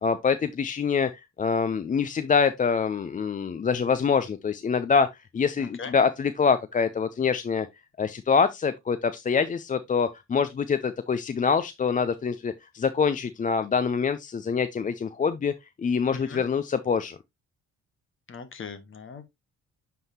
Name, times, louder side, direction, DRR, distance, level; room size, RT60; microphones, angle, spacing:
voice 1, 0.0-5.1 5.3-7.7 8.0-17.2, left 5 dB, 25° left, 0.4 m, -25 dB
voice 2, 5.6-5.9 16.1-16.4 18.3-19.3, left 5 dB, 40° left, 1.4 m, -40 dB
9.3 x 3.7 x 2.8 m
cardioid pair, 90°, 30 cm